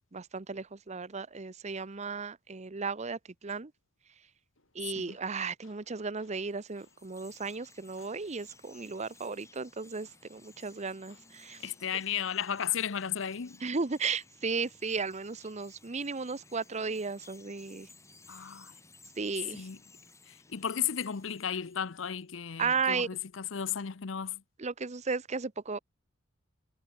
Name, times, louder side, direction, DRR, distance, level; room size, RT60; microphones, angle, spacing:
voice 1, 0.0-3.7 4.7-11.6 13.6-17.9 19.2-19.7 22.6-23.1 24.6-25.8, right 4 dB, 35° right, 0.8 m, -35 dB
Tools, 4.6-12.6, left 4 dB, 85° left, 6.5 m, -68 dB
Chirp tweet, 6.5-22.1, left 3 dB, 15° left, 6.0 m, -58 dB
voice 2, 11.6-13.6 18.3-18.7 19.5-19.8 20.3-24.4, left 8 dB, 70° left, 0.7 m, -34 dB
head